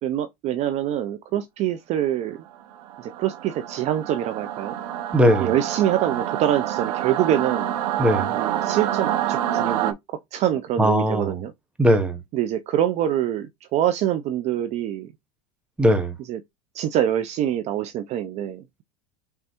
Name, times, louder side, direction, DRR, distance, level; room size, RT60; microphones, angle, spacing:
voice 1, 0.0-2.4 3.0-4.8 5.4-7.8 8.3-10.0 10.3-11.5 12.3-15.1 16.2-16.4 16.7-18.6, right 11 dB, 35° right, 0.4 m, -25 dB
Singing / Musical instrument, 2.7-9.9, right 11 dB, 80° right, 0.6 m, -27 dB
voice 2, 5.1-5.5 8.0-8.3 10.8-11.3 11.8-12.2 15.8-16.1, equal, 5° right, 0.7 m, -19 dB
5.4 x 3.4 x 2.9 m
supercardioid pair, 145°, 20 cm